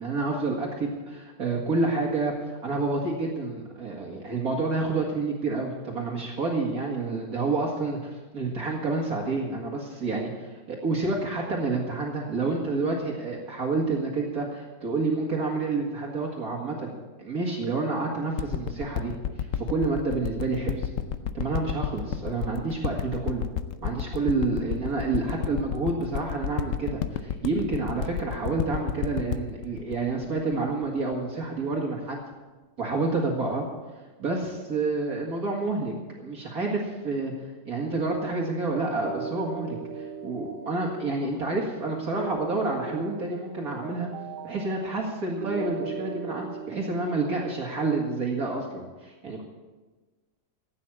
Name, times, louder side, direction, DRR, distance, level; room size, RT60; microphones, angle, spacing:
voice 1, 0.0-16.9 17.2-19.1 19.4-20.9 21.3-23.5 23.8-32.2 32.8-33.6 34.2-37.3 37.6-44.1 44.4-49.4, right 3 dB, 50° right, -2 dB, 2.4 m, -29 dB
sound 1, 18.4-31.1 31.7-31.8, left 9 dB, 60° left, 0.9 m, -31 dB
sound 2, 39.0-48.2, right 6 dB, 70° right, 1.4 m, -38 dB
15.5 x 9.1 x 7.3 m, 1.3 s
omnidirectional pair, 2.0 m